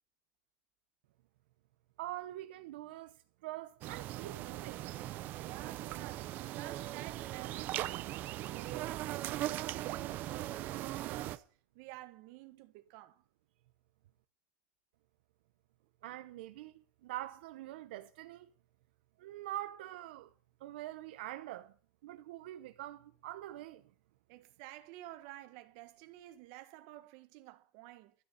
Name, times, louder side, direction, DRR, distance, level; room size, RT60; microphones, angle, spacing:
voice 1, 2.0-3.2 3.4-4.8 16.0-18.5 19.2-20.3 20.6-21.7 22.0-23.8, right 15 dB, 75° right, 0.8 m, -44 dB
sound 1, 3.8-11.4, right 15 dB, 35° right, 0.6 m, -39 dB
voice 2, 5.4-8.2 8.5-11.5 11.7-13.2 24.3-28.1, right 16 dB, 50° right, 1.3 m, -51 dB
13.0 x 6.8 x 9.1 m
supercardioid pair, 170°, 5 cm